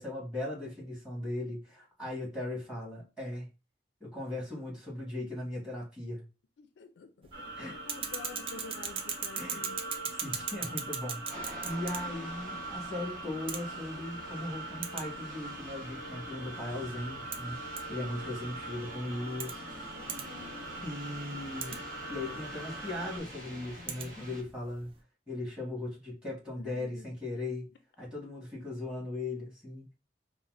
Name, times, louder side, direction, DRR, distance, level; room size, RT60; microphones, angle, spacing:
voice 1, 0.0-3.5 4.0-6.2 7.6-7.7 9.4-9.7 10.2-17.6 17.9-19.6 20.8-21.8 22.1-24.9 25.3-27.7 28.0-29.8, left 2 dB, 5° right, 1.6 m, -38 dB
voice 2, 6.6-9.9 12.0-12.6 18.6-19.6 19.9-20.7 26.6-27.1, left 5 dB, 70° left, 0.4 m, -50 dB
sound 1, 7.2-25.0, right 7 dB, 30° right, 0.3 m, -43 dB
sound 2, 7.3-23.2, right 2 dB, 80° right, 0.7 m, -42 dB
sound 3, 11.3-24.4, equal, 50° right, 1.3 m, -48 dB
4.0 x 2.0 x 2.5 m
head